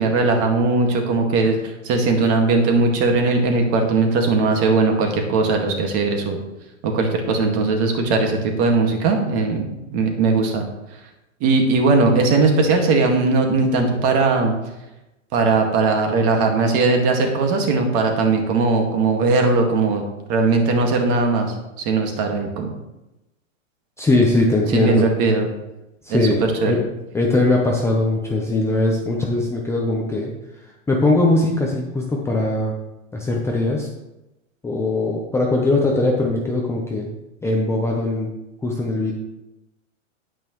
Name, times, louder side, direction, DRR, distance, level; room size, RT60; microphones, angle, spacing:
voice 1, 0.0-6.4 6.8-9.7 9.9-10.6 11.4-14.5 15.3-20.0 20.3-21.5 21.8-22.7 24.7-25.5 26.1-26.3 26.6-26.8, right 3 dB, 35° right, 3 dB, 1.9 m, -19 dB
voice 2, 24.0-25.1 26.0-26.8 27.1-30.3 30.9-32.8 33.1-33.9 34.6-37.1 37.4-38.3 38.6-39.1, left 2 dB, 5° left, -1 dB, 0.7 m, -20 dB
9.2 x 8.8 x 3.1 m, 0.96 s
hypercardioid pair, 130°, 40 cm